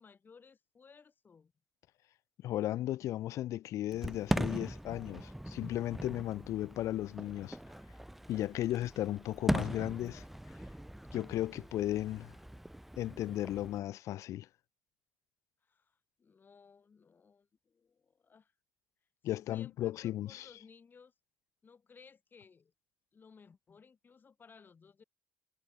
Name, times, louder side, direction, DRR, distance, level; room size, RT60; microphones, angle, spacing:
voice 1, 0.0-1.5 15.6-18.5 19.3-21.1 21.6-22.7 23.1-25.0, left 5 dB, 35° left, 5.0 m, -60 dB
voice 2, 2.4-7.6 8.3-10.2 11.1-12.3 13.0-14.5 19.2-20.5, left 14 dB, 70° left, 1.0 m, -35 dB
Fireworks, 3.9-13.8, right 1 dB, 5° right, 0.7 m, -40 dB
supercardioid pair, 75°, 6 cm